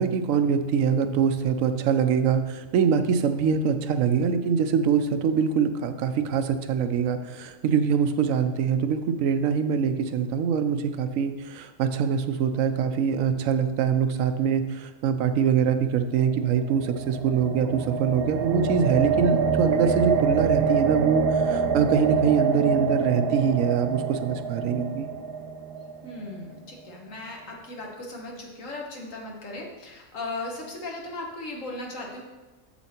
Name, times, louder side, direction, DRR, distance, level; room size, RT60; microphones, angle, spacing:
voice 1, 0.0-25.1, right 7 dB, 75° right, 9 dB, 1.0 m, -24 dB
sound 1, 16.3-26.4, right 5 dB, 55° right, 0.8 m, -26 dB
voice 2, 26.0-32.2, left 2 dB, 70° left, -1 dB, 1.7 m, -37 dB
7.3 x 7.1 x 4.4 m, 1.2 s
omnidirectional pair, 1.4 m